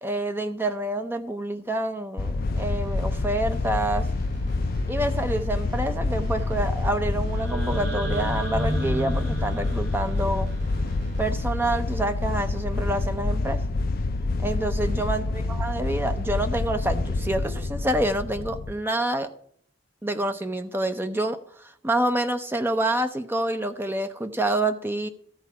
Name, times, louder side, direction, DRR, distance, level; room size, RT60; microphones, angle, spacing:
voice 1, 0.0-4.1 4.9-10.5 11.2-13.6 14.4-19.3 20.0-25.1, right 1 dB, 10° right, 8 dB, 0.6 m, -27 dB
sound 1, 2.2-18.7, left 2 dB, 55° left, 0.5 m, -27 dB
sound 2, 2.5-11.3, left 1 dB, 65° right, 4.5 m, -40 dB
sound 3, 7.3-11.4, right 2 dB, 85° right, 4.4 m, -34 dB
13.5 x 4.6 x 6.9 m, 0.62 s
head